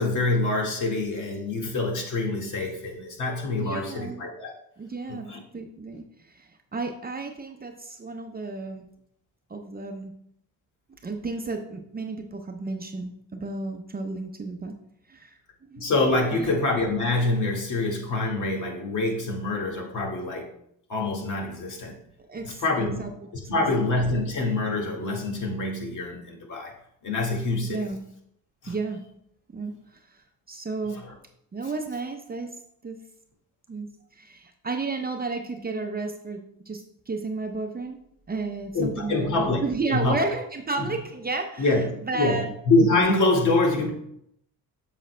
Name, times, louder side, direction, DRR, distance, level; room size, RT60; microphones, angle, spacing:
voice 1, 0.0-4.5 5.1-5.4 15.8-20.5 20.9-21.9 22.4-23.1 23.3-26.7 27.0-27.8 28.6-28.7 31.0-31.1 38.7-39.6 39.9-40.2 40.8-40.9 41.6-41.9 42.1-43.9, left 2 dB, 50° left, -1 dB, 1.9 m, -25 dB
voice 2, 3.6-4.3 4.8-5.3 5.5-8.9 9.5-10.1 11.0-14.7 15.1-15.9 16.3-16.5 22.3-22.6 23.0-23.1 23.5-23.6 27.6-28.0 28.7-29.0 29.5-29.7 30.1-30.2 30.5-31.0 31.5-32.5 32.8-33.0 33.7-33.9 34.2-38.0 38.3-41.8 42.0-42.5, right 3 dB, 25° right, 4 dB, 0.7 m, -32 dB
7.4 x 6.6 x 2.2 m, 0.74 s
cardioid pair, 90°, 37 cm